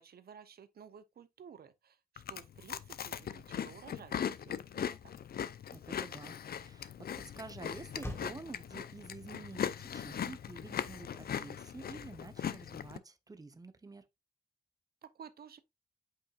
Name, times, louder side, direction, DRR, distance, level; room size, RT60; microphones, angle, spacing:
voice 1, 0.0-5.1 15.0-15.6, right 7 dB, 85° right, 0.7 m, -54 dB
Chewing mastication, 2.2-13.0, left 8 dB, 80° left, 0.5 m, -40 dB
voice 2, 5.7-14.0, right 3 dB, 25° right, 0.8 m, -49 dB
Motor vehicle (road), 7.9-12.6, left 1 dB, 15° left, 1.7 m, -53 dB
8.7 x 5.3 x 2.4 m
wide cardioid pair, 130°, 15 cm